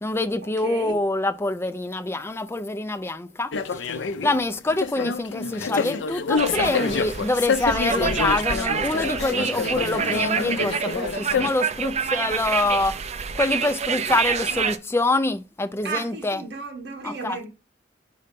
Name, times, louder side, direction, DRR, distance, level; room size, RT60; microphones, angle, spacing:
voice 1, 0.0-3.9 4.2-13.0 13.3-16.4 17.0-17.4, left 2 dB, 15° left, 0.5 m, -25 dB
voice 2, 0.6-1.0 15.8-17.5, right 4 dB, 60° right, 1.4 m, -33 dB
sound 1, 3.5-11.5, left 5 dB, 70° left, 0.6 m, -27 dB
sound 2, 6.4-14.8, right 6 dB, 35° right, 0.5 m, -27 dB
5.4 x 4.0 x 5.2 m
head